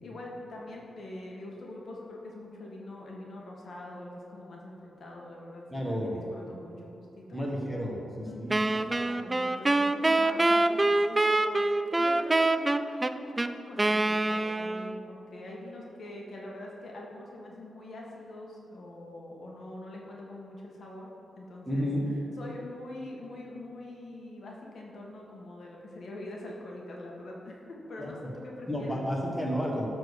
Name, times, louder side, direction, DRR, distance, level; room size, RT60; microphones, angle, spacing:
voice 1, 0.0-7.4 8.3-21.1 21.4-21.9 22.4-29.0, left 1 dB, 60° left, -2 dB, 1.9 m, -44 dB
voice 2, 5.7-6.1 7.3-8.8 21.6-22.1 28.0-28.1 28.7-29.9, equal, ahead, -3 dB, 1.6 m, -31 dB
Wind instrument woodwind instrument, 8.5-15.1, right 2 dB, 20° right, 0.3 m, -25 dB
13.5 x 4.6 x 6.8 m, 2.8 s
wide cardioid pair, 120°, 0 cm